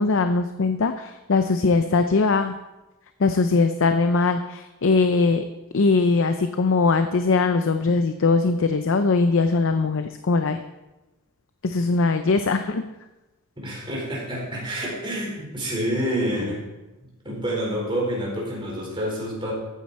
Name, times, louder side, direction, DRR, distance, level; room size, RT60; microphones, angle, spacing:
voice 1, 0.0-2.5 3.2-5.4 5.7-10.6 11.6-12.8, left 3 dB, 65° left, 8 dB, 0.6 m, -21 dB
voice 2, 13.6-16.6 17.2-19.5, equal, 25° right, -4 dB, 4.5 m, -28 dB
14.0 x 9.3 x 4.3 m, 1.1 s
head